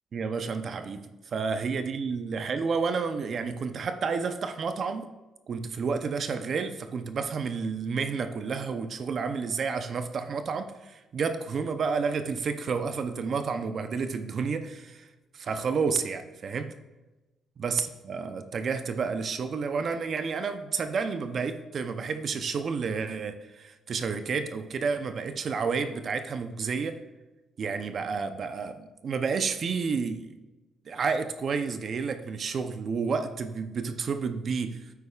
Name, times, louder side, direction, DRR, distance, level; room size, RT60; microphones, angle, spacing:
voice 1, 0.1-5.1 5.5-15.1 15.3-16.7 17.6-27.0 27.6-30.3 30.9-34.9, right 5 dB, 50° right, 9 dB, 0.6 m, -30 dB
9.5 x 8.2 x 2.4 m, 1.1 s
cardioid pair, 90°, 0 cm